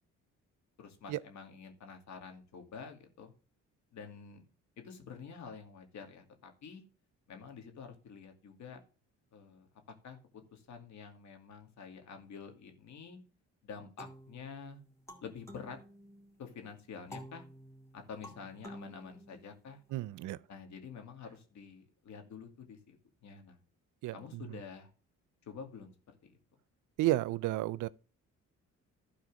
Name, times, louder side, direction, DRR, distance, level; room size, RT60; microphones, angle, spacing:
voice 1, 0.8-3.3 3.9-4.5 4.8-6.8 7.3-8.8 9.3-9.7 10.0-10.2 10.5-13.2 13.6-14.8 15.2-15.8 16.4-17.4 17.9-19.8 20.5-23.0 23.2-23.6 24.1-24.9 25.4-25.9 26.2-26.4, left 6 dB, 70° left, 2.4 m, -48 dB
sound 1, 14.0-16.5 17.1-19.9, equal, 10° left, 2.3 m, -52 dB
voice 2, 19.9-20.4 24.0-24.6 27.0-27.9, right 16 dB, 80° right, 0.5 m, -32 dB
12.5 x 4.3 x 6.2 m
cardioid pair, 90°, 30 cm